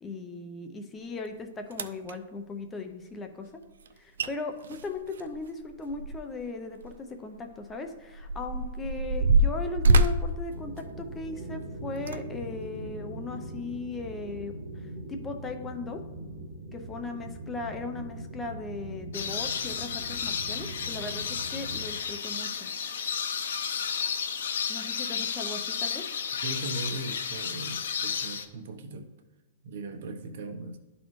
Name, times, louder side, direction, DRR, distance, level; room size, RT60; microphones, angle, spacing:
voice 1, 0.0-3.5 4.0-16.0 16.7-22.7 24.7-26.0, left 3 dB, 10° left, 5 dB, 0.5 m, -38 dB
sound 1, 1.2-1.3 1.7-2.1 3.9-4.0 4.2-4.3 4.6-6.4 6.8-6.9 7.6-11.4 12.0-12.2 12.8-12.9, right 2 dB, 90° right, 0.4 m, -25 dB
sound 2, 10.5-21.9, right 2 dB, 35° right, 1.1 m, -41 dB
sound 3, 19.1-28.4, left 7 dB, 80° left, 0.7 m, -32 dB
voice 2, 26.4-29.1 29.6-30.8, right 2 dB, 55° right, 7 dB, 0.8 m, -38 dB
12.0 x 4.1 x 3.1 m, 1.2 s
hypercardioid pair, 165°, 0 cm